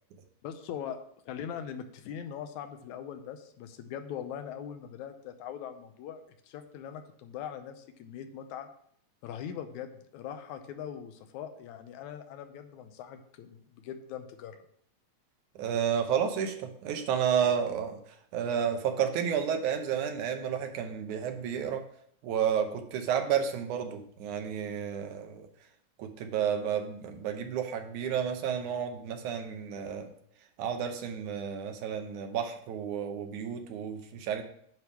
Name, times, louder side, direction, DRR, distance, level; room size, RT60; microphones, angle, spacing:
voice 1, 0.4-1.0 1.3-8.7 9.2-14.6, left 9 dB, 80° left, 8 dB, 2.1 m, -41 dB
voice 2, 15.6-18.0 18.3-21.8 22.2-25.5 26.0-30.1 30.6-34.4, right 8 dB, 80° right, 6 dB, 2.3 m, -31 dB
9.4 x 3.5 x 5.9 m, 0.65 s
omnidirectional pair, 3.4 m